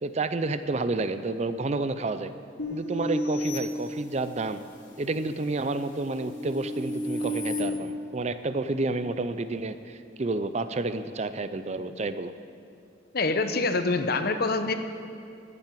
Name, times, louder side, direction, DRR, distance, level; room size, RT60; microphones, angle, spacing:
voice 1, 0.0-2.3 2.7-4.6 5.0-12.3, right 2 dB, 35° right, 11 dB, 0.5 m, -30 dB
sound 1, 2.6-4.5 5.1-7.6, equal, 80° left, 2.8 m, -33 dB
voice 2, 13.1-14.7, left 3 dB, 55° left, 9 dB, 0.8 m, -25 dB
12.0 x 8.9 x 9.1 m, 2.4 s
head